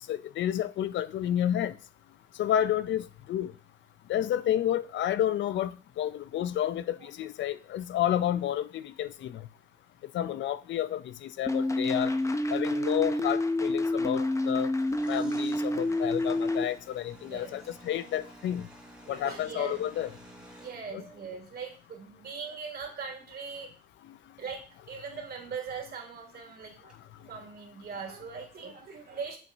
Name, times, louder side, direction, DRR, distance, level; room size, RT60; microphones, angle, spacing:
voice 1, 0.0-1.7 2.4-3.5 4.1-9.5 10.1-12.1 12.5-14.7 15.1-18.7 19.1-20.1 20.9-21.0, left 11 dB, 70° left, 0.5 m, -30 dB
sound 1, 11.5-16.6, left 1 dB, 15° left, 0.6 m, -28 dB
sound 2, 14.9-20.9 24.4-24.5 24.8-24.9 26.9-27.0 27.4-27.5, right 1 dB, 5° right, 2.7 m, -52 dB
voice 2, 17.2-17.6 19.1-19.8 20.6-23.7 24.4-26.9 27.2-29.4, right 5 dB, 50° right, 2.5 m, -41 dB
8.3 x 7.1 x 2.7 m
cardioid pair, 90°, 20 cm